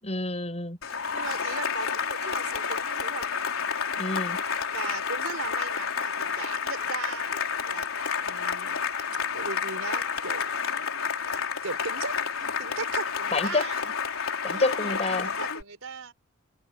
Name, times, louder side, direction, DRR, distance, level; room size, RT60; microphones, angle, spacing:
voice 1, 0.0-0.8 4.0-4.4 13.3-13.7 14.4-15.3, left 2 dB, 30° left, 6.9 m, -28 dB
Cheering / Applause, 0.8-15.6, left 6 dB, 85° left, 3.9 m, -30 dB
voice 2, 0.8-3.2 4.6-8.8 9.1-10.5 11.6-13.8 14.5-16.1, right 4 dB, 80° right, 4.3 m, -38 dB
head